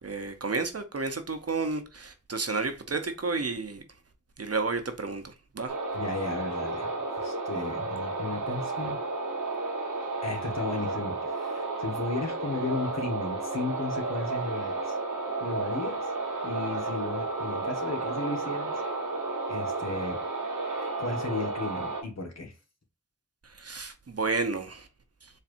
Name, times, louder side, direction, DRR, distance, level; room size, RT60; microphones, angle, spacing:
voice 1, 0.0-3.8 4.4-5.7 23.6-24.9, right 3 dB, 50° right, 0.8 m, -31 dB
sound 1, 5.7-22.0, right 3 dB, 85° right, 1.1 m, -32 dB
voice 2, 5.9-9.0 10.2-15.0 15.4-16.1 16.4-18.8 19.5-20.2 21.0-22.5, left 3 dB, 60° left, 1.4 m, -34 dB
4.3 x 3.3 x 2.6 m
wide cardioid pair, 45°, 31 cm